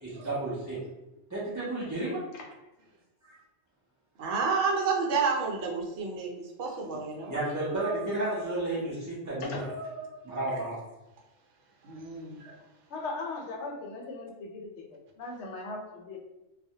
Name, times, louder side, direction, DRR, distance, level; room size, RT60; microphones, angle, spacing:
voice 1, 0.0-0.8 1.3-2.2 3.2-3.4 7.3-9.6 10.2-10.8, right 2 dB, 25° right, -10 dB, 0.4 m, -32 dB
voice 2, 4.2-7.9 9.7-10.4 11.8-12.5, right 4 dB, 75° right, 0 dB, 0.9 m, -31 dB
voice 3, 6.7-7.0 9.4-9.7 12.9-14.8 15.2-16.2, left 3 dB, 75° left, 1 dB, 0.9 m, -38 dB
2.2 x 2.1 x 2.7 m, 0.99 s
omnidirectional pair, 1.2 m